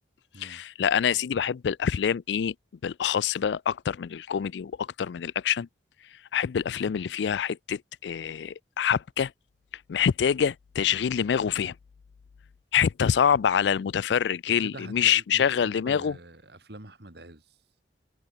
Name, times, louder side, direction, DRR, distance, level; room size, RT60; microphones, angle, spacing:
voice 1, 0.4-2.5 2.8-5.7 6.3-9.3 9.9-11.7 12.7-16.1, left 8 dB, 80° left, 0.4 m, -26 dB
voice 2, 14.5-17.6, right 1 dB, 65° right, 2.8 m, -45 dB
head